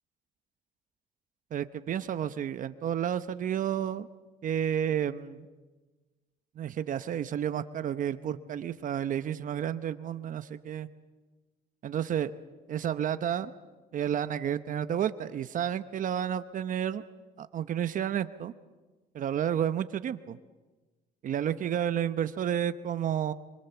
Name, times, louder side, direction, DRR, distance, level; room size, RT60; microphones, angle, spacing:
voice 1, 1.5-4.1 4.4-5.5 6.6-10.9 11.8-12.3 12.7-13.5 13.9-17.0 17.4-18.5 19.1-20.4 21.2-23.3, right 9 dB, 50° right, 11 dB, 0.9 m, -31 dB
25.5 x 25.0 x 7.0 m, 1.2 s
cardioid pair, 110°, 17 cm